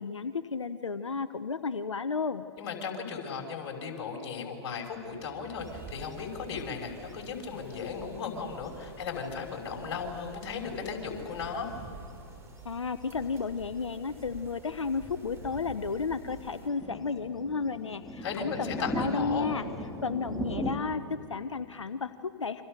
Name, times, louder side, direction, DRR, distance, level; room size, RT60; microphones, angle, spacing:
voice 1, 0.0-2.5 12.6-19.6 20.0-22.6, left 5 dB, 90° left, 12 dB, 0.8 m, -33 dB
voice 2, 2.6-11.7 18.2-19.5, left 5 dB, 55° left, 2 dB, 6.0 m, -36 dB
sound 1, 4.9-7.2 7.8-9.3 10.1-12.0 12.6-12.7 13.1-14.0 14.8-20.8, left 1 dB, ahead, 2.9 m, -40 dB
sound 2, 5.6-16.7, right 3 dB, 15° right, 4.1 m, -49 dB
29.0 x 25.5 x 6.6 m, 2.9 s
hypercardioid pair, 115°, 15 cm